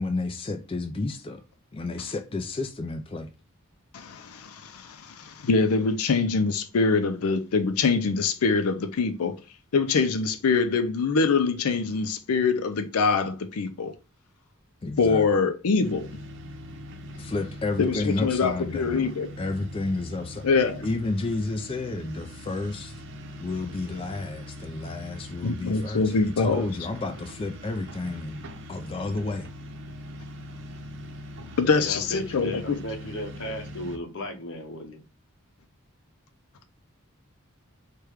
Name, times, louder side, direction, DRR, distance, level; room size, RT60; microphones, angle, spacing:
voice 1, 0.0-1.4 1.7-3.3 14.8-15.3 17.2-20.4 20.8-23.0 23.4-28.4 28.7-29.5, left 2 dB, 25° left, 0.4 m, -31 dB
voice 2, 3.9-9.4 9.7-13.9 15.0-16.1 17.8-19.3 20.4-20.8 25.4-26.7 31.6-32.8, left 4 dB, 85° left, 0.5 m, -24 dB
sound 1, 15.8-34.0, equal, 60° right, 0.7 m, -42 dB
voice 3, 31.7-35.0, left 1 dB, 60° left, 0.9 m, -36 dB
4.6 x 2.2 x 4.8 m
head